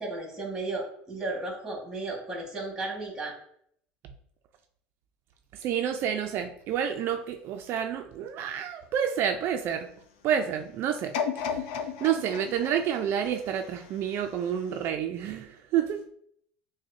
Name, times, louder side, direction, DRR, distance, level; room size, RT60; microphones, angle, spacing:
voice 1, 0.0-3.3, right 2 dB, 10° right, -1 dB, 1.5 m, -34 dB
voice 2, 5.6-9.9 10.2-16.0, right 9 dB, 55° right, 6 dB, 0.4 m, -29 dB
sound 1, 11.1-14.2 14.8-14.9, left 7 dB, 85° left, 0.4 m, -34 dB
6.2 x 2.1 x 2.6 m, 0.66 s
supercardioid pair, 115°, 5 cm